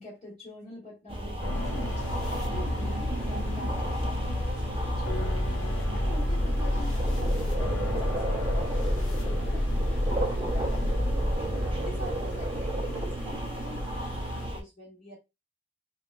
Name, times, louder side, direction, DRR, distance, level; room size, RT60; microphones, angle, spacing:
voice 1, 0.0-5.4 5.9-11.3 11.8-15.2, equal, 35° left, 1.3 m, -45 dB
sound 1, 1.1-14.6, right 1 dB, 25° right, 0.5 m, -32 dB
sound 2, 1.4-11.4, left 1 dB, 85° left, 0.8 m, -30 dB
sound 3, 1.5-14.5, right 1 dB, 65° left, 1.1 m, -41 dB
3.4 x 2.3 x 2.4 m
head